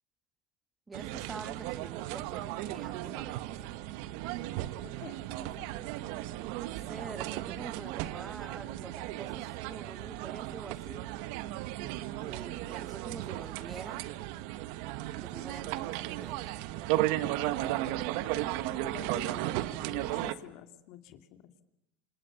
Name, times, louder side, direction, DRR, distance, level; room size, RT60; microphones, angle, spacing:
voice 1, 0.9-3.7 6.7-11.1 12.2-14.0 15.1-16.4, right 3 dB, 15° right, 12 dB, 1.8 m, -47 dB
sound 1, 0.9-20.3, right 15 dB, 70° right, 1.4 m, -35 dB
voice 2, 4.8-5.8 18.7-19.5 19.9-21.5, left 10 dB, 65° left, 8 dB, 2.7 m, -49 dB
28.0 x 27.0 x 7.2 m, 0.88 s
supercardioid pair, 105°, 0 cm